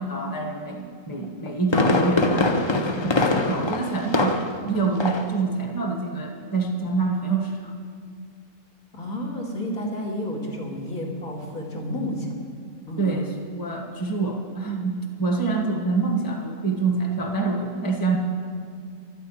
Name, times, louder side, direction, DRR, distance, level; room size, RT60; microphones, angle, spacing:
voice 1, 0.0-7.7 13.0-18.2, right 3 dB, 15° left, 2 dB, 1.2 m, -26 dB
Fireworks, 1.2-4.7 5.0-5.4 5.7-5.8, left 2 dB, 35° left, 0.5 m, -23 dB
voice 2, 8.9-12.3 12.9-13.1, left 1 dB, 75° left, -3 dB, 2.9 m, -31 dB
12.0 x 9.3 x 8.5 m, 2.3 s
omnidirectional pair, 1.5 m